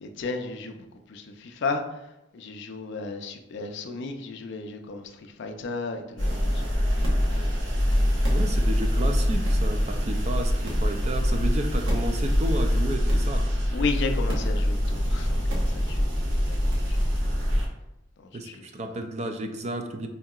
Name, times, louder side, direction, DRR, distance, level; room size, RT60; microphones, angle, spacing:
voice 1, 0.0-1.8 2.3-6.7 7.3-7.5 13.7-16.1 16.4-17.6 18.2-18.7, left 4 dB, 60° left, 5 dB, 0.4 m, -34 dB
sound 1, 6.2-17.7, equal, 70° right, 0.9 m, -24 dB
voice 2, 8.3-13.5 18.3-20.1, right 1 dB, 35° right, 5 dB, 0.3 m, -32 dB
4.5 x 2.8 x 2.3 m, 0.91 s
head